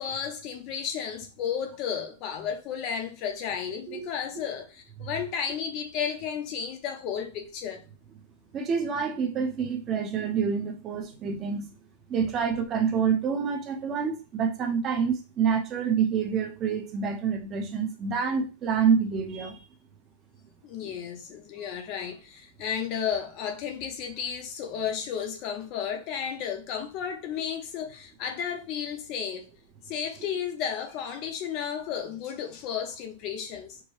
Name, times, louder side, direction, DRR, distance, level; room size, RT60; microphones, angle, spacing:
voice 1, 0.0-7.8 20.6-29.5 29.9-33.8, left 8 dB, 35° left, 0.7 m, -33 dB
voice 2, 8.5-11.7 12.1-19.6 20.8-20.9, right 6 dB, 20° right, 0.7 m, -27 dB
4.6 x 2.2 x 4.7 m
supercardioid pair, 170°, 0 cm